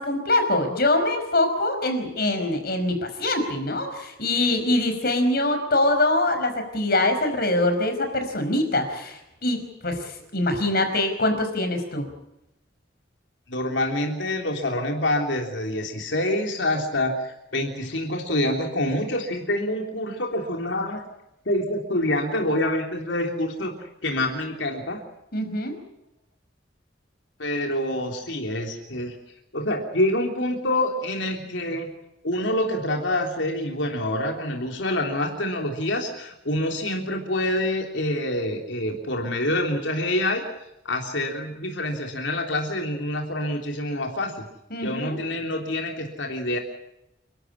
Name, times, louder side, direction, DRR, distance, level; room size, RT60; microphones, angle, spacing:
voice 1, 0.0-12.1 25.3-25.8 44.7-45.2, left 1 dB, 55° left, 7 dB, 5.2 m, -24 dB
voice 2, 13.5-21.0 21.5-23.7 24.0-25.0 27.4-29.2 29.5-31.9 32.2-40.4 40.9-44.5 44.8-46.6, left 1 dB, 85° left, 2 dB, 3.4 m, -26 dB
30.0 x 12.5 x 9.8 m, 0.88 s
head